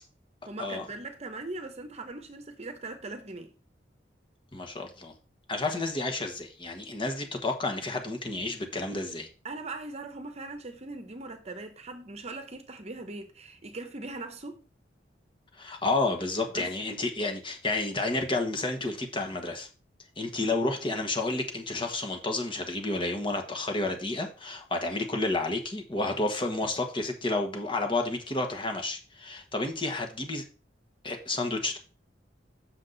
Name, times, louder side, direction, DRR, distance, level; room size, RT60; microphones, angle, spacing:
voice 1, 0.5-3.5 9.4-14.6 16.5-16.7 20.4-20.5, right 2 dB, 35° right, 0.9 m, -40 dB
voice 2, 4.5-5.1 5.5-9.3 15.5-19.7 20.2-30.4 31.0-31.8, left 2 dB, 30° left, 1.4 m, -30 dB
7.4 x 6.4 x 4.0 m
head